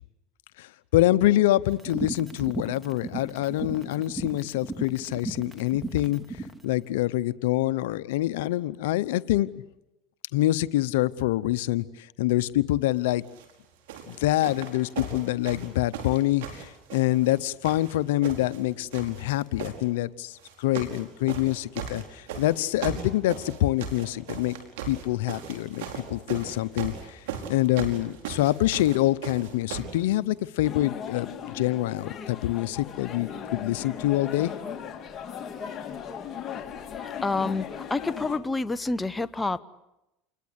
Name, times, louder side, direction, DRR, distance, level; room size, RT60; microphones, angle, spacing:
voice 1, 0.6-9.5 10.3-13.2 14.1-24.6 24.9-27.2 27.5-34.5, left 15 dB, 85° left, 14 dB, 0.9 m, -26 dB
sound 1, 1.7-6.6, right 2 dB, 5° right, 2.5 m, -35 dB
sound 2, 13.2-13.5 13.9-17.4 17.6-18.6 18.9-19.8 20.4-21.0 21.3-30.0 30.8-30.9, right 7 dB, 85° right, 5.1 m, -37 dB
sound 3, 30.6-38.4, left 7 dB, 35° left, 3.8 m, -37 dB
voice 2, 37.2-37.6 37.9-39.6, left 3 dB, 15° left, 12 dB, 0.9 m, -27 dB
28.5 x 21.5 x 8.3 m, 0.91 s
supercardioid pair, 105°, 0 cm